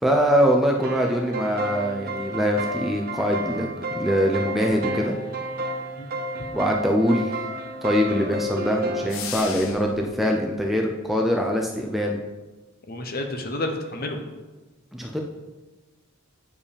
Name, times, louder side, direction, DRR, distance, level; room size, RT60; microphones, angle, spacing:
voice 1, 0.0-5.1 6.5-7.4 7.8-12.2 14.9-15.2, equal, ahead, 0 dB, 0.5 m, -23 dB
sound 1, 0.7-9.1, right 1 dB, 45° right, 0.8 m, -31 dB
sound 2, 9.1-10.1, left 6 dB, 70° left, 0.8 m, -34 dB
voice 2, 12.9-14.2, left 1 dB, 45° left, 5 dB, 0.9 m, -30 dB
8.7 x 4.8 x 5.1 m, 1.2 s
head